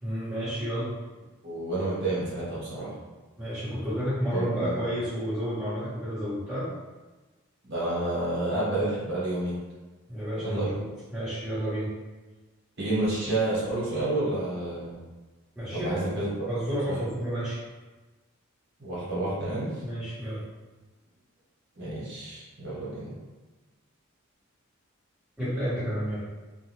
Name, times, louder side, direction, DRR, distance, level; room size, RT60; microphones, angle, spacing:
voice 1, 0.0-0.9 3.4-6.7 10.1-10.9 11.1-11.9 15.5-16.0 16.5-17.6 19.8-20.4 25.4-26.3, equal, 5° right, -12 dB, 1.2 m, -31 dB
voice 2, 1.4-2.9 4.3-4.7 7.6-9.5 10.4-10.7 12.8-15.0 15.7-17.0 18.8-19.8 21.7-23.1, right 2 dB, 55° right, -8 dB, 1.2 m, -30 dB
2.5 x 2.3 x 3.2 m, 1.2 s
head